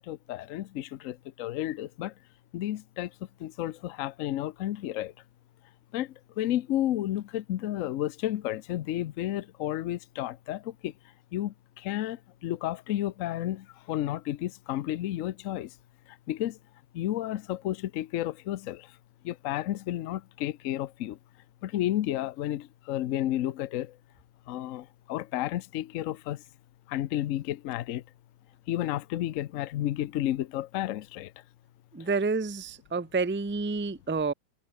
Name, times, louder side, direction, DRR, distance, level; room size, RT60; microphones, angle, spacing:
voice 1, 0.1-2.1 2.5-3.1 3.4-5.1 5.9-6.1 6.4-10.9 11.3-15.7 16.3-16.6 16.9-18.9 19.2-21.2 21.6-23.9 24.5-26.4 26.9-28.0 28.7-31.3, left 13 dB, 80° left, 0.7 m, -32 dB
voice 2, 31.9-34.3, right 4 dB, 15° right, 0.4 m, -29 dB
omnidirectional pair, 2.1 m